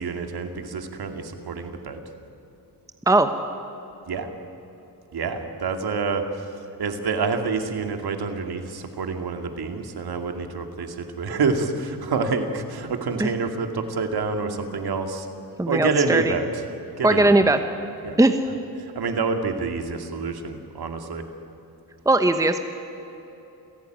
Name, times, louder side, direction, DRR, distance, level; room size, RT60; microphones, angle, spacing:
voice 1, 0.0-2.0 4.1-4.3 5.1-6.2 6.8-15.3 15.7-16.5 17.0-17.5 18.0-18.2 18.9-21.2, right 4 dB, 70° right, 5 dB, 2.7 m, -27 dB
voice 2, 15.6-16.3 17.0-17.6 18.2-18.4 22.0-22.6, right 2 dB, 10° right, 7 dB, 1.0 m, -18 dB
29.0 x 17.5 x 9.4 m, 3.0 s
wide cardioid pair, 145°, 39 cm